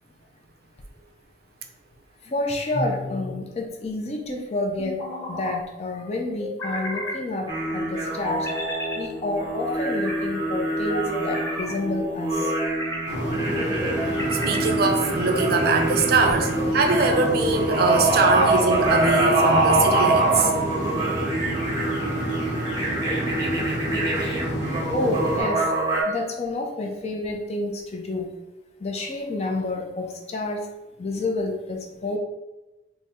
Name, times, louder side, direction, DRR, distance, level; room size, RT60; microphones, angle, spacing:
voice 1, 2.3-5.0 5.3-8.5 9.0-12.5 21.0-21.1 24.9-25.6 26.1-28.3 28.8-30.6 31.0-32.2, left 2 dB, 35° left, 2 dB, 0.4 m, -29 dB
sound 1, 2.7-3.4 4.8-5.5 6.4-7.2 8.2-9.0 9.6-10.2 10.9-11.7 12.4-13.0 13.8-14.7 15.3-15.8 16.5-17.3, left 1 dB, 10° left, 1.2 m, -32 dB
sound 2, 7.5-26.0, right 2 dB, 20° right, 0.7 m, -25 dB
sound 3, 13.1-25.4, equal, 60° left, 0.8 m, -30 dB
voice 2, 14.5-20.5, right 3 dB, 55° right, 4 dB, 0.4 m, -22 dB
4.0 x 2.0 x 3.6 m, 1.0 s
head